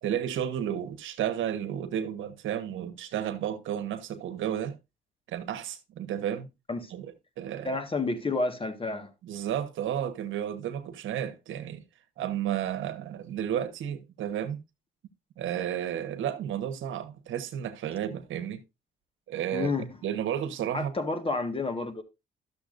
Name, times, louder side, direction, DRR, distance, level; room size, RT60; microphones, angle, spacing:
voice 1, 0.0-4.8 5.3-6.5 6.9-7.8 9.2-11.8 12.2-14.6 15.4-18.6 19.3-20.9, right 10 dB, 80° right, 1.2 m, -32 dB
voice 2, 7.6-9.1 19.5-19.8 20.7-22.0, left 3 dB, 25° left, 1.6 m, -30 dB
12.0 x 6.9 x 2.5 m
cardioid pair, 90°, 20 cm